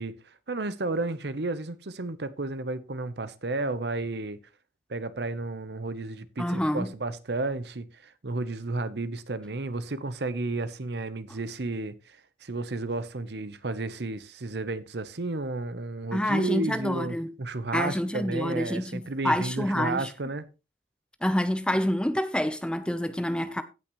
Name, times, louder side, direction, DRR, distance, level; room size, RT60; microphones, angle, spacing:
voice 1, 0.0-4.4 4.9-20.5, right 2 dB, 65° right, 0.8 m, -32 dB
voice 2, 6.4-6.9 16.1-17.3 17.7-20.1 21.2-23.6, equal, 5° left, 0.6 m, -27 dB
16.5 x 6.1 x 3.1 m
head